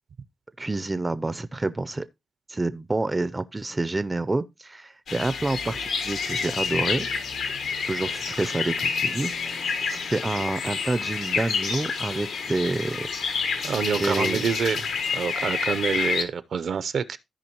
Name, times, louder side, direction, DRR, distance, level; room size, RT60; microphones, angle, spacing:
voice 1, 0.6-2.1 2.5-7.1 7.8-13.1 14.0-14.5, right 2 dB, 20° right, 0.5 m, -28 dB
sound 1, 5.1-16.2, left 5 dB, 85° left, 1.3 m, -29 dB
voice 2, 13.6-14.9 15.1-17.2, right 6 dB, 60° right, 0.6 m, -27 dB
14.0 x 5.0 x 2.9 m
cardioid pair, 100°, 0 cm